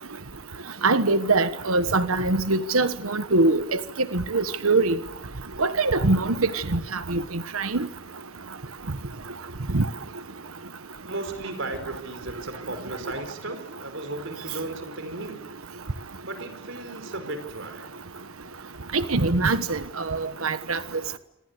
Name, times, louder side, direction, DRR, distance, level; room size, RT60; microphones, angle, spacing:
voice 1, 0.8-3.8 4.1-5.0 5.6-6.3 6.7-6.8 7.1-7.2 7.5-7.9 9.7-9.8 18.9-19.8 20.1-20.8, right 3 dB, 80° right, 12 dB, 1.3 m, -22 dB
voice 2, 11.1-15.5 16.2-17.9, right 2 dB, 65° right, 9 dB, 5.1 m, -35 dB
26.5 x 26.0 x 8.2 m, 0.89 s
head